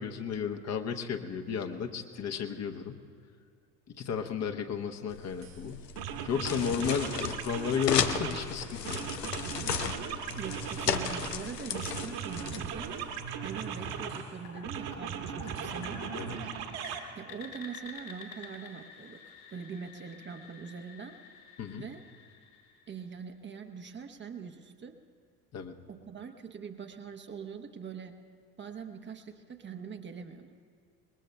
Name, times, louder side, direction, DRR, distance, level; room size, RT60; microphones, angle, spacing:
voice 1, 0.0-3.0 4.0-5.8 6.2-9.0 16.2-16.4 21.6-21.8 25.5-25.7, left 7 dB, 35° left, 5 dB, 1.0 m, -33 dB
sound 1, 5.1-13.2, left 7 dB, 85° left, 0.6 m, -35 dB
sound 2, 5.4-5.6 6.0-8.5 8.8-11.4 11.7-14.3 14.6-17.0, right 7 dB, 50° right, 1.6 m, -38 dB
voice 2, 10.4-12.9 13.4-16.0 17.1-21.2 21.8-22.0 22.9-25.0 25.9-28.2 28.6-30.5, right 6 dB, 25° right, 5 dB, 0.9 m, -43 dB
sound 3, 13.5-23.3, left 4 dB, 65° left, 3.9 m, -49 dB
25.5 x 21.0 x 2.3 m, 2.2 s
figure-of-eight pair, 65°, 47 cm